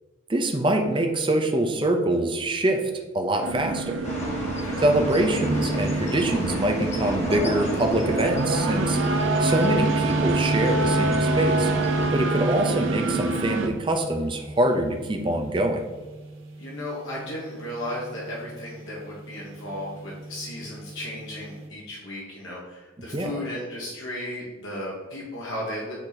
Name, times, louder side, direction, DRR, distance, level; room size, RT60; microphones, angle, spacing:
voice 1, 0.3-4.0 4.8-9.0 9.4-11.7 12.1-15.8 23.1-23.3, right 1 dB, 25° right, 4 dB, 0.6 m, -24 dB
sound 1, 3.4-13.7, right 3 dB, 65° right, 0.6 m, -27 dB
sound 2, 4.0-12.1, equal, 35° left, 1.1 m, -32 dB
voice 2, 4.4-4.8 16.6-25.9, left 1 dB, 70° left, -5 dB, 1.2 m, -35 dB
sound 3, 5.4-21.7, right 2 dB, 90° right, 1.2 m, -32 dB
8.8 x 3.0 x 4.0 m, 1.2 s
head